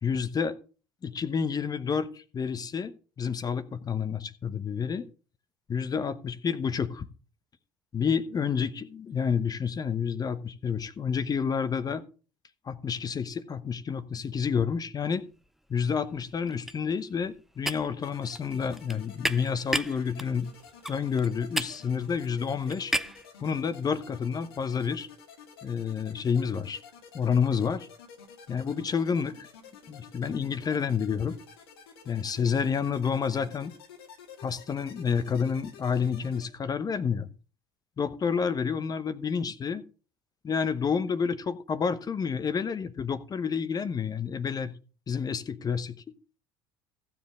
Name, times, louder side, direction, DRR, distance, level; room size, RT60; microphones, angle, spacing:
voice 1, 0.0-0.5 1.0-5.0 5.7-7.1 7.9-12.0 12.6-15.2 15.7-20.5 20.9-22.9 23.4-25.1 25.6-26.8 27.1-27.9 28.5-29.5 29.9-31.4 32.1-33.7 34.4-37.3 38.0-39.8 40.4-44.7 45.1-46.0, left 6 dB, 30° left, 1.0 m, -29 dB
sound 1, 15.4-15.8 16.0-23.3, right 1 dB, ahead, 0.6 m, -34 dB
sound 2, 18.0-36.5, left 6 dB, 80° left, 1.9 m, -51 dB
15.0 x 7.3 x 3.7 m
hypercardioid pair, 70°, 12 cm